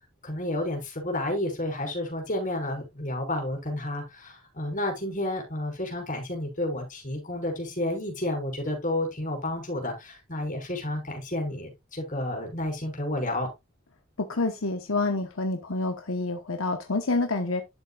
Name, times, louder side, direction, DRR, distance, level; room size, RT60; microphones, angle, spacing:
voice 1, 0.2-13.5, left 1 dB, 40° left, 5.0 m, -31 dB
voice 2, 14.2-17.6, left 3 dB, 75° left, 1.1 m, -28 dB
11.5 x 7.1 x 2.4 m
head